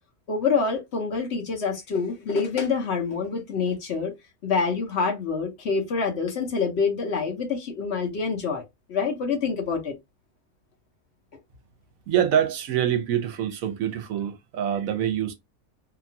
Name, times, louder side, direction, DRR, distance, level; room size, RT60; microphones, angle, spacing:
voice 1, 0.3-4.1 4.4-8.6 8.9-10.0, left 5 dB, 55° left, 0.9 m, -26 dB
voice 2, 12.1-15.3, right 9 dB, 75° right, 1.0 m, -25 dB
2.8 x 2.3 x 2.6 m
omnidirectional pair, 1.5 m